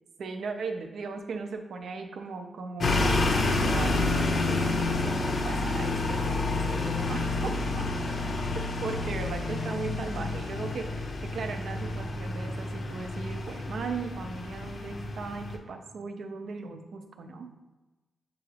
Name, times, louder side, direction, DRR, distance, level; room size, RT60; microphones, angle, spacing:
voice 1, 0.2-7.8 8.5-17.5, right 4 dB, 70° right, 6 dB, 0.5 m, -38 dB
sound 1, 2.8-15.6, left 2 dB, 55° left, 0.5 m, -29 dB
6.8 x 2.3 x 3.3 m, 1.1 s
cardioid pair, 105°, 0 cm